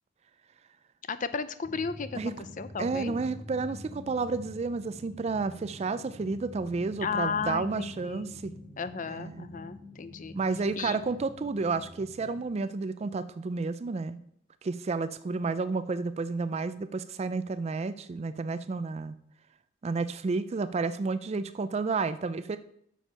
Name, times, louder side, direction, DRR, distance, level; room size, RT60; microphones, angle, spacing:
voice 1, 1.1-3.2 7.0-8.3 8.8-10.4 10.8-11.0, left 5 dB, 45° left, 13 dB, 0.5 m, -34 dB
sound 1, 1.6-12.4, left 2 dB, 20° left, 2.6 m, -46 dB
voice 2, 2.8-8.5 9.1-9.5 10.3-14.2 14.6-19.2 19.8-22.6, right 4 dB, 35° right, 14 dB, 0.3 m, -31 dB
7.4 x 6.9 x 5.5 m, 0.69 s
head